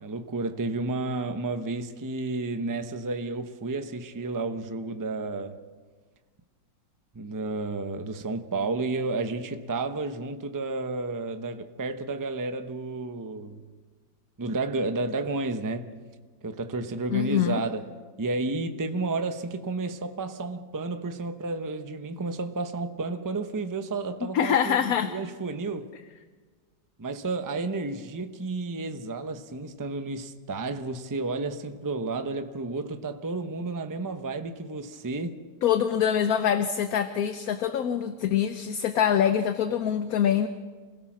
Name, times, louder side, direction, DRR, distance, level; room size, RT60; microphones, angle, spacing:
voice 1, 0.0-5.6 7.1-13.6 14.4-16.0 16.4-17.9 18.2-25.9 27.0-35.4, right 3 dB, 20° right, 0.5 m, -31 dB
voice 2, 17.1-17.6 24.3-25.1 35.6-40.5, left 9 dB, 60° left, 1.1 m, -24 dB
28.0 x 17.0 x 6.1 m
omnidirectional pair, 2.0 m